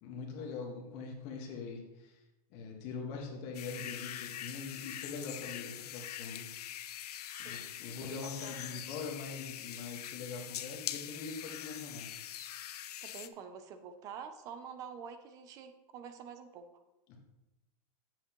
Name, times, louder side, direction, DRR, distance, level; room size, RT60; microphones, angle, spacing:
voice 1, 0.0-2.2 2.5-6.9 7.4-12.2 17.1-17.2, left 4 dB, 30° left, 0 dB, 1.4 m, -43 dB
sound 1, 3.5-13.3, left 11 dB, 85° left, 0.5 m, -43 dB
voice 2, 7.3-7.8 8.0-8.8 13.0-16.7, right 7 dB, 20° right, 9 dB, 0.4 m, -47 dB
9.0 x 7.5 x 3.0 m, 1.0 s
supercardioid pair, 170°, 20 cm